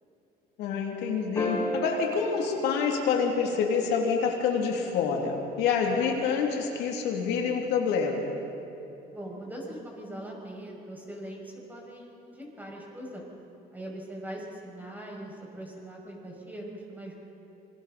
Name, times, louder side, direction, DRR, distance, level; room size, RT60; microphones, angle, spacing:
voice 1, 0.6-8.2, left 6 dB, 85° left, 0 dB, 2.7 m, -27 dB
sound 1, 1.4-3.9 6.1-6.2, equal, 15° left, 4.8 m, -34 dB
voice 2, 9.1-13.2 13.7-17.1, right 1 dB, 10° right, -2 dB, 6.4 m, -41 dB
27.5 x 23.0 x 4.2 m, 3.0 s
cardioid pair, 110°, 17 cm